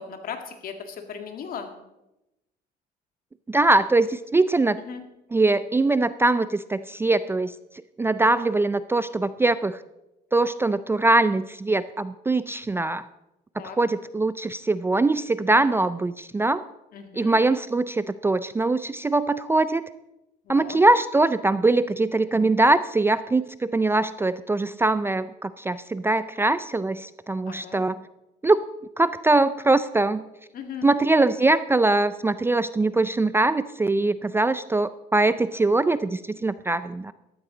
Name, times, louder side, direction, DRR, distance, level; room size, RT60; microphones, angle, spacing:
voice 1, 0.0-1.7 4.9-5.0 13.6-13.8 16.9-17.4 20.5-20.8 27.5-27.8 30.5-30.9, left 6 dB, 60° left, 6 dB, 1.9 m, -37 dB
voice 2, 3.5-4.8 5.3-7.5 8.0-9.8 10.3-13.0 13.6-16.6 17.2-19.8 20.5-28.0 28.4-28.6 29.0-30.2 30.8-37.1, right 2 dB, 15° right, 14 dB, 0.4 m, -22 dB
13.0 x 12.5 x 3.9 m, 0.93 s
cardioid pair, 110°, 17 cm